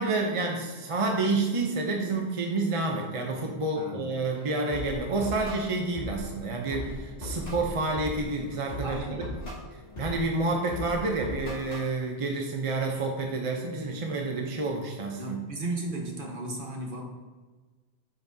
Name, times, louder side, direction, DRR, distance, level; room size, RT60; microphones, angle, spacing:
voice 1, 0.0-9.2 10.0-15.4, right 3 dB, 35° right, 1 dB, 0.7 m, -29 dB
voice 2, 3.7-4.1 8.8-9.3 15.2-17.0, right 2 dB, 50° right, 0 dB, 1.4 m, -35 dB
sound 1, 4.3-11.9, left 1 dB, 60° left, 2.5 m, -39 dB
8.8 x 5.9 x 2.7 m, 1.3 s
omnidirectional pair, 1.1 m